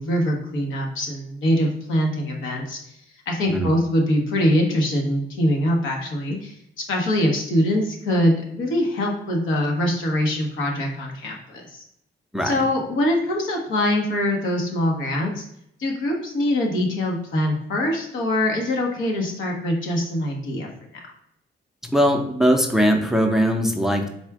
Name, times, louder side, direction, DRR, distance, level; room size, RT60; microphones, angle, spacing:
voice 1, 0.0-2.8 3.3-6.6 6.9-11.8 12.4-15.4 15.8-20.7, left 1 dB, 80° left, 0 dB, 1.1 m, -23 dB
voice 2, 21.9-24.1, equal, ahead, 3 dB, 0.5 m, -20 dB
4.1 x 2.4 x 4.7 m, 0.75 s
cardioid pair, 90°, 20 cm